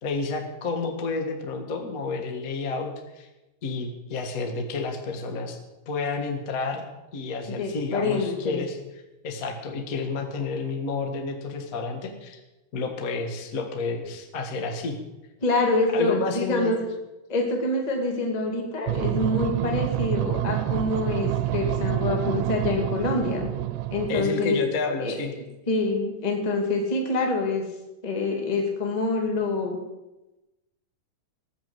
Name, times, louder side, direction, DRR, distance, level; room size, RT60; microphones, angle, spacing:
voice 1, 0.0-3.3 3.6-5.6 5.8-6.9 7.1-8.8 9.2-12.4 12.7-15.0 15.9-16.8 24.1-25.3, left 4 dB, 75° left, 4 dB, 0.7 m, -30 dB
voice 2, 7.5-8.6 15.4-16.7 17.3-23.5 23.9-24.6 25.0-25.2 25.7-27.6 28.0-29.8, left 2 dB, 15° left, 1 dB, 1.2 m, -26 dB
sound 1, 18.9-24.3, right 15 dB, 80° right, 2.6 m, -27 dB
19.5 x 7.9 x 8.0 m, 1.0 s
omnidirectional pair, 4.9 m